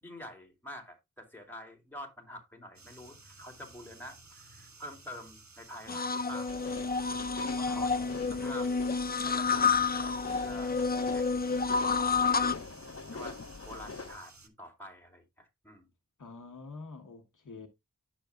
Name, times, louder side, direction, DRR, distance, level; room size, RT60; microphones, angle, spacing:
voice 1, 0.0-6.6 7.1-8.7 9.2-10.7 11.1-11.7 12.3-12.8 13.1-15.9, equal, 5° left, 2.6 m, -47 dB
sound 1, 2.7-14.5, right 3 dB, 60° right, 1.2 m, -55 dB
sound 2, 5.9-12.5, left 5 dB, 30° left, 0.5 m, -29 dB
sound 3, 6.5-14.2, left 4 dB, 50° left, 0.9 m, -43 dB
voice 2, 7.7-8.7 16.2-17.7, left 3 dB, 70° left, 1.1 m, -47 dB
9.9 x 6.8 x 2.2 m
wide cardioid pair, 45°, 32 cm